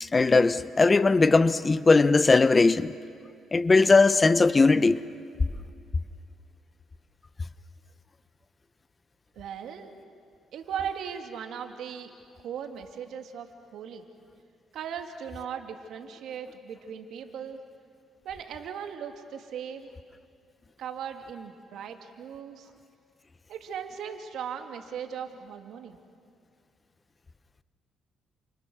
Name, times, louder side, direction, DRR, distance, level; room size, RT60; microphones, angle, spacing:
voice 1, 0.0-2.9 3.5-5.0, left 3 dB, 30° left, 0.8 m, -19 dB
voice 2, 9.3-10.0 10.5-12.1 12.4-14.0 14.7-17.6 18.2-19.9 20.8-22.7 23.5-26.0, right 8 dB, 75° right, 2.6 m, -38 dB
30.0 x 29.0 x 6.4 m
cardioid pair, 90°, 0 cm